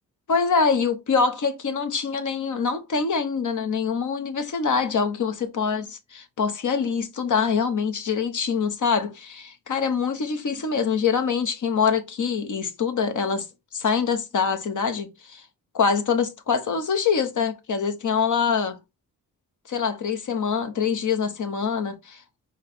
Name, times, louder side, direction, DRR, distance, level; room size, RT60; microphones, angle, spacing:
voice 1, 0.3-13.5 13.7-15.4 15.7-18.8 19.7-22.2, left 6 dB, 55° left, 1.0 m, -24 dB
4.7 x 2.9 x 3.5 m
supercardioid pair, 60°, 36 cm